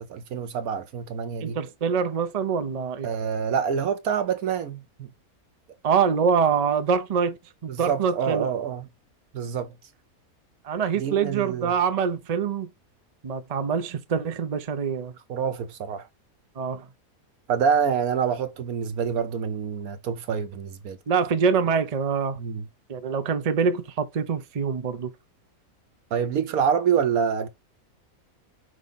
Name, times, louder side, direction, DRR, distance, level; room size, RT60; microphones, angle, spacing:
voice 1, 0.0-1.6 3.0-5.1 7.7-8.9 9.3-9.7 10.9-11.7 15.3-16.1 17.5-21.0 22.4-22.7 26.1-27.5, right 7 dB, 80° right, 1.3 m, -26 dB
voice 2, 1.4-3.1 5.8-8.5 10.6-12.7 13.2-15.1 16.6-16.9 21.1-22.4 22.9-25.1, right 6 dB, 40° right, 0.6 m, -25 dB
4.9 x 4.8 x 4.0 m
omnidirectional pair, 1.5 m